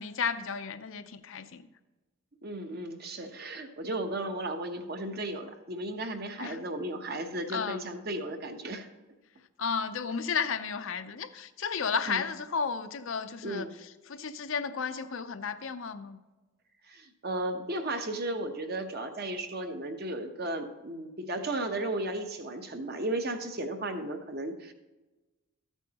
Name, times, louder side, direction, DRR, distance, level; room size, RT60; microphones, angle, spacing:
voice 1, 0.0-1.6 6.4-6.6 7.5-7.8 9.6-16.2, left 5 dB, 65° left, 10 dB, 0.6 m, -33 dB
voice 2, 2.4-8.9 12.1-12.2 13.4-13.7 16.9-24.7, right 1 dB, 45° right, 6 dB, 0.9 m, -35 dB
13.0 x 9.0 x 2.9 m, 1.1 s
head